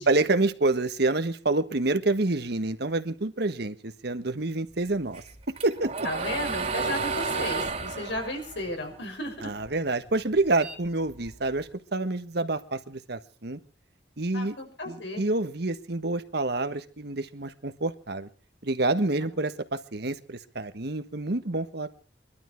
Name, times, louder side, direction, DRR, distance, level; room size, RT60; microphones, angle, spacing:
voice 1, 0.1-5.2 5.6-6.1 9.4-13.6 14.2-14.5 14.9-18.3 18.6-21.9, right 2 dB, 65° right, 10 dB, 1.4 m, -28 dB
sound 1, 5.1-9.7 10.0-11.6, right 4 dB, 35° right, 3.3 m, -32 dB
voice 2, 6.0-9.5 14.3-15.2, left 1 dB, 85° left, 3 dB, 6.3 m, -34 dB
23.5 x 12.5 x 4.6 m, 0.38 s
head